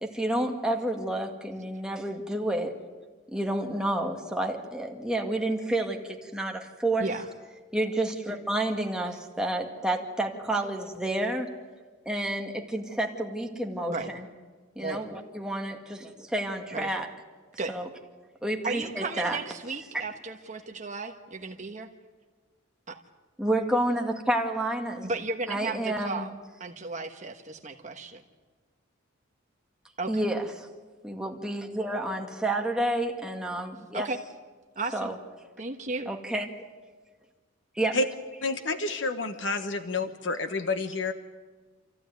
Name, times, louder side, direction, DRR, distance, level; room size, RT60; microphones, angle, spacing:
voice 1, 0.0-2.8 3.3-7.1 7.7-11.5 12.1-14.3 14.8-17.1 17.7-17.9 18.4-19.4 23.4-25.1 25.5-26.3 30.1-30.7 31.0-34.1 34.9-35.1 36.1-36.5 37.8-38.0, right 1 dB, 5° right, 1 dB, 2.1 m, -30 dB
voice 2, 18.6-21.9 22.9-23.0 25.0-26.3 26.6-28.2 30.0-30.3 33.9-34.2 34.7-35.1 35.6-36.1, right 3 dB, 35° right, 4 dB, 1.2 m, -34 dB
voice 3, 38.4-41.1, left 3 dB, 65° left, 8 dB, 1.1 m, -29 dB
27.5 x 15.0 x 9.5 m, 1.4 s
head